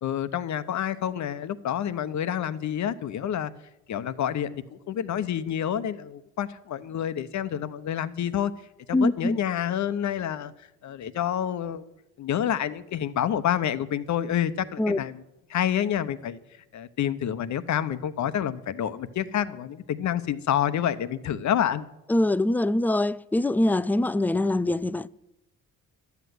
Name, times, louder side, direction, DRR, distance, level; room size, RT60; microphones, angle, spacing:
voice 1, 0.0-3.5 3.9-8.5 8.9-10.5 10.8-11.8 12.2-15.2 15.5-16.4 16.7-21.9, left 10 dB, 60° left, 0.9 m, -28 dB
voice 2, 8.9-9.4 14.8-15.0 22.1-25.1, left 1 dB, 5° left, 0.4 m, -23 dB
12.0 x 8.2 x 9.4 m
cardioid pair, 85°, 33 cm